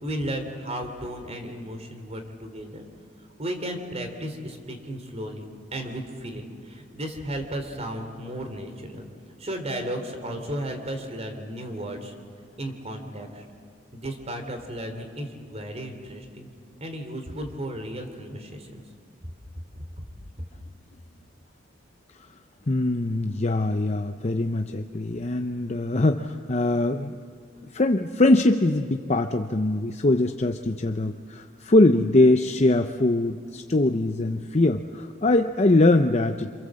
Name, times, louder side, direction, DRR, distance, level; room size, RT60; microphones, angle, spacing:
voice 1, 0.0-2.8 3.4-5.4 5.7-9.1 9.4-12.1 12.6-13.4 13.9-16.5 16.8-18.8 20.0-20.1, right 1 dB, 35° right, 6 dB, 3.2 m, -34 dB
voice 2, 22.7-27.1 27.7-36.5, left 2 dB, 35° left, 6 dB, 0.7 m, -22 dB
28.0 x 27.0 x 7.7 m, 2.1 s
head